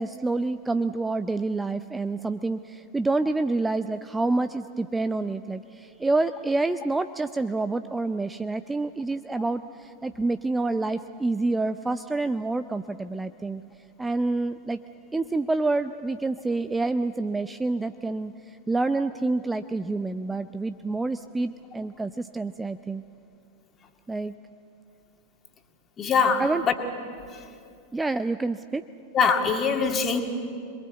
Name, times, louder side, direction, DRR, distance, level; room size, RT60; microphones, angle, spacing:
voice 1, 0.0-13.6 14.0-14.8 15.1-18.3 18.7-23.0 24.1-24.3 26.4-26.6 27.9-28.8, right 3 dB, 10° right, 12 dB, 0.5 m, -27 dB
voice 2, 26.0-26.7 29.1-30.2, left 5 dB, 25° left, 4 dB, 2.3 m, -22 dB
26.5 x 22.0 x 8.2 m, 2.5 s
figure-of-eight pair, 90°, 0 cm